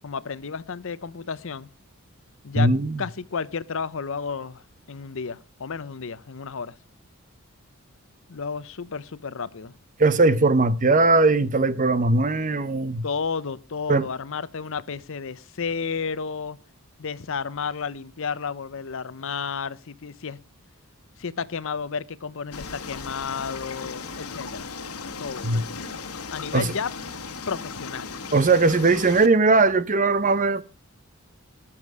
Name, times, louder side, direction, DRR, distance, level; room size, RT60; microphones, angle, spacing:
voice 1, 0.0-1.7 2.4-2.7 3.0-6.8 8.3-9.7 13.0-16.6 17.0-20.4 21.2-24.7 25.2-26.9 27.5-28.1, left 5 dB, 60° left, 0.7 m, -32 dB
voice 2, 2.5-3.0 10.0-13.0 13.9-14.1 25.4-25.6 26.5-26.7 28.3-30.6, right 3 dB, 35° right, 0.8 m, -19 dB
sound 1, 22.5-29.3, left 4 dB, 85° left, 1.5 m, -36 dB
20.0 x 7.3 x 4.8 m
head